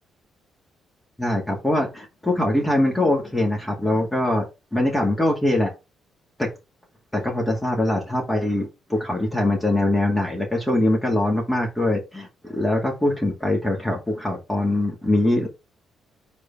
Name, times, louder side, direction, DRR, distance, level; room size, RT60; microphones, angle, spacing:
voice 1, 1.2-4.5 4.7-5.7 6.4-6.5 7.1-15.5, left 1 dB, 10° left, -1 dB, 2.2 m, -22 dB
4.8 x 4.2 x 5.4 m, 0.26 s
cardioid pair, 90°, 0 cm